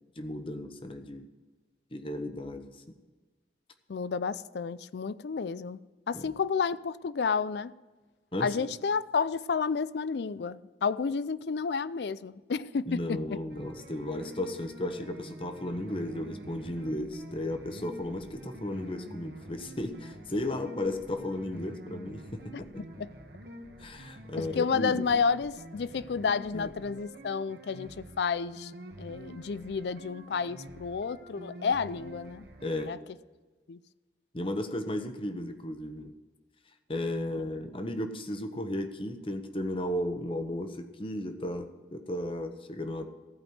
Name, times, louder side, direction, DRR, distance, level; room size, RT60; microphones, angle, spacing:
voice 1, 0.2-1.3 1.9-2.7 6.1-6.4 8.3-8.5 12.9-22.8 23.8-25.0 26.5-26.7 32.6-32.9 34.3-36.1 36.9-43.1, left 1 dB, 30° left, 1.0 m, -34 dB
voice 2, 3.9-7.7 8.4-13.4 22.8-23.1 24.4-28.7 29.0-32.5 32.9-33.0 33.7-33.8, left 5 dB, 70° left, 0.4 m, -31 dB
sound 1, 13.5-32.9, right 1 dB, 60° right, 1.3 m, -47 dB
15.0 x 5.3 x 8.0 m
head